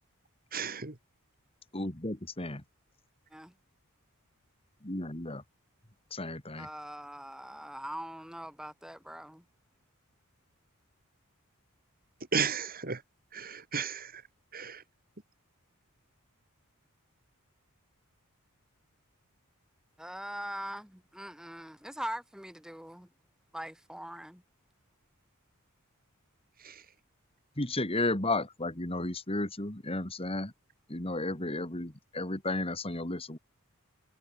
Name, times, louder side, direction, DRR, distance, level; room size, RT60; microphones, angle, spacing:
voice 1, 0.5-1.0 12.3-13.0 13.3-14.2 14.5-14.8 26.6-26.8, right 6 dB, 40° right, 2.7 m, -34 dB
voice 2, 1.7-2.6 4.8-5.4 6.1-6.7 27.6-30.5 30.9-33.4, left 2 dB, 25° left, 2.6 m, -33 dB
voice 3, 6.6-9.4 20.0-23.1 23.5-24.4, equal, 5° right, 2.3 m, -42 dB
head